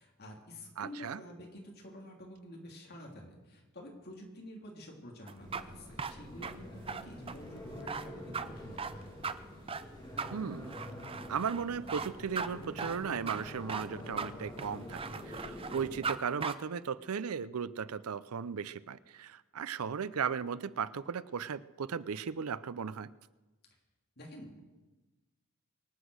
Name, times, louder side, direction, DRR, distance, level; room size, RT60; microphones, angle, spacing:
voice 1, 0.0-9.1 24.2-24.6, left 1 dB, 50° left, 1 dB, 3.1 m, -49 dB
voice 2, 0.8-1.2 10.3-10.7 11.3-23.1, right 6 dB, 85° right, 17 dB, 0.5 m, -36 dB
sound 1, 5.3-16.2 16.4-16.5, right 5 dB, 25° right, 0.6 m, -38 dB
sound 2, 5.4-16.0, left 1 dB, 20° left, 2.9 m, -47 dB
24.0 x 8.1 x 6.4 m, 1.2 s
head